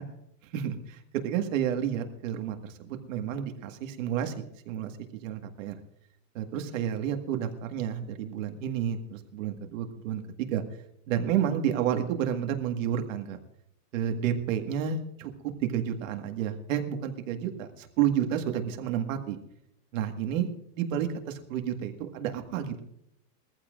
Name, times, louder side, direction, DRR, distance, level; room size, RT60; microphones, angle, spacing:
voice 1, 0.5-4.9 5.2-5.7 6.3-10.6 11.1-13.4 13.9-15.3 15.6-19.4 19.9-20.5 20.8-22.8, right 9 dB, 55° right, 5 dB, 1.8 m, -30 dB
21.5 x 14.5 x 2.5 m, 0.75 s
supercardioid pair, 165°, 48 cm